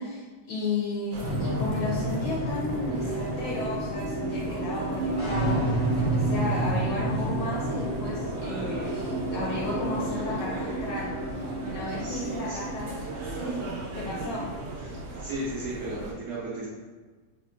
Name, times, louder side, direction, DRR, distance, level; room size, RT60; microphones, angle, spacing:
voice 1, 0.0-12.9 13.2-13.7 13.9-14.4, left 2 dB, 75° left, -5 dB, 1.2 m, -33 dB
sound 1, 1.1-16.1, right 2 dB, 85° right, 1.3 m, -38 dB
sound 2, 1.2-15.9, right 1 dB, 60° left, 0.9 m, -31 dB
voice 2, 12.0-12.8 14.8-16.7, right 1 dB, 70° right, -8 dB, 0.9 m, -36 dB
3.7 x 2.1 x 2.3 m, 1.4 s
omnidirectional pair, 2.1 m